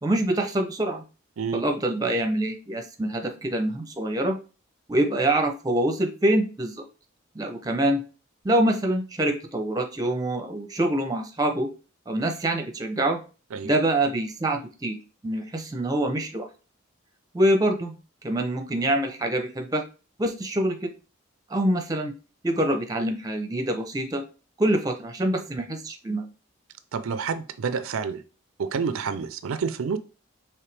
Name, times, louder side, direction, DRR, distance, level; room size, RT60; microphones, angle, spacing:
voice 1, 0.0-1.0 1.5-4.4 4.9-6.8 7.3-8.0 8.4-11.7 12.1-13.2 13.6-15.0 15.2-16.5 17.3-17.9 18.2-19.8 20.2-20.9 21.5-22.1 22.4-24.2 24.6-26.3, right 1 dB, 15° right, 5 dB, 0.6 m, -25 dB
voice 2, 26.9-28.2 28.6-30.0, right 5 dB, 80° right, 11 dB, 0.4 m, -28 dB
4.9 x 3.2 x 3.3 m, 0.34 s
head